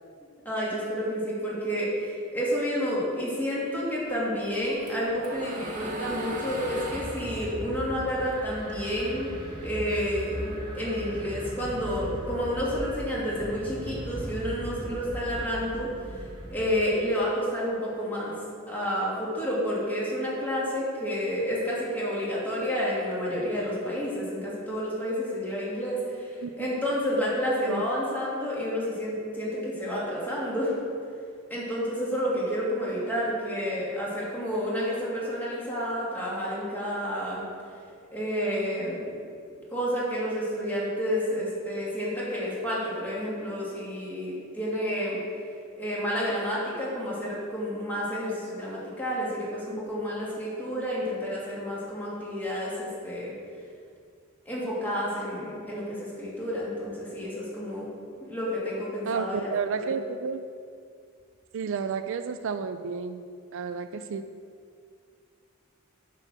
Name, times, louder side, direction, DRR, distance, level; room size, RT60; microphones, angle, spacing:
voice 1, 0.4-9.3 9.6-15.9 16.5-18.3 18.7-30.8 31.5-37.5 38.1-39.1 39.7-45.2 45.8-53.3 54.5-57.9 58.2-60.0, equal, 10° left, -7 dB, 2.4 m, -30 dB
sound 1, 4.4-8.9 9.3-10.9, right 1 dB, 40° right, 1.5 m, -38 dB
sound 2, 5.0-16.7, equal, 20° right, 1.1 m, -39 dB
voice 2, 59.0-60.4 61.5-63.2 63.5-64.3, right 6 dB, 65° right, 10 dB, 0.4 m, -31 dB
9.8 x 4.6 x 6.1 m, 2.3 s
head